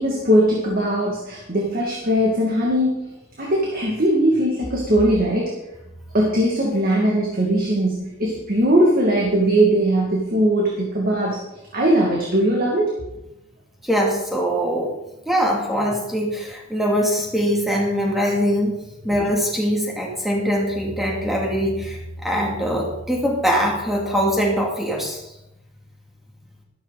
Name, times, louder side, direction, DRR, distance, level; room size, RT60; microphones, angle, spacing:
voice 1, 0.0-3.1 3.4-5.6 6.1-11.4 11.7-13.1, right 1 dB, 40° right, -2 dB, 2.3 m, -20 dB
voice 2, 13.8-14.9 15.3-18.8 19.0-25.3, equal, ahead, -2 dB, 2.7 m, -22 dB
13.0 x 13.0 x 4.2 m, 0.93 s
head